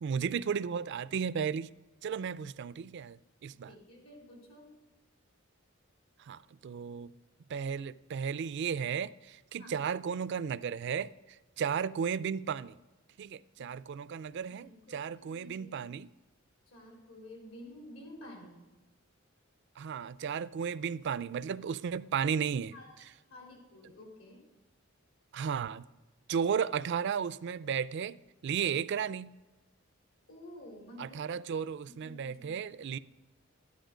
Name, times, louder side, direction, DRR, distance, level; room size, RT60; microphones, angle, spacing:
voice 1, 0.0-1.7 2.0-3.7 6.2-7.1 7.5-12.8 13.2-16.1 19.8-22.7 25.3-25.8 26.3-29.3 31.0-33.0, right 7 dB, 55° right, 0.3 m, -34 dB
voice 2, 3.7-4.8 9.6-9.8 13.6-14.2 14.5-15.8 16.7-18.6 22.7-24.4 30.3-31.2 31.8-32.6, left 1 dB, 80° left, 3.8 m, -51 dB
12.5 x 10.5 x 5.0 m
head